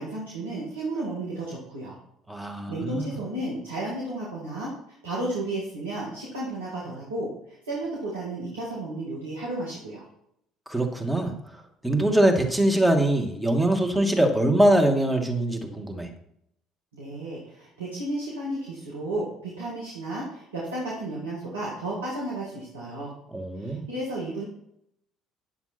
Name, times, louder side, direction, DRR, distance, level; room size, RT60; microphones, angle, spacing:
voice 1, 0.0-1.9 2.7-4.7 5.0-10.0 16.9-23.1 23.6-24.5, right 1 dB, 80° right, -6 dB, 2.0 m, -33 dB
voice 2, 2.3-3.1 10.7-11.3 11.8-16.1 23.3-23.8, right 1 dB, 5° right, 2 dB, 2.1 m, -23 dB
10.5 x 6.9 x 4.4 m, 0.75 s
figure-of-eight pair, 55°, 0 cm